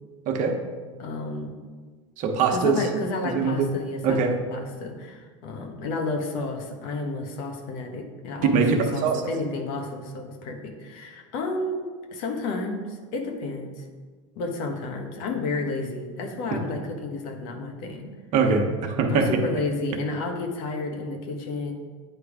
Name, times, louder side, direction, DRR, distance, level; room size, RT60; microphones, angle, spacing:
voice 1, 1.0-1.6 2.5-11.8 12.1-13.8 14.3-18.1 19.1-21.7, left 3 dB, 65° left, 3 dB, 1.3 m, -31 dB
voice 2, 2.2-2.8 3.3-3.7 4.0-4.3 8.5-9.2 18.3-19.3, right 5 dB, 50° right, 3 dB, 1.0 m, -22 dB
9.0 x 3.3 x 4.9 m, 1.5 s
hypercardioid pair, 100°, 16 cm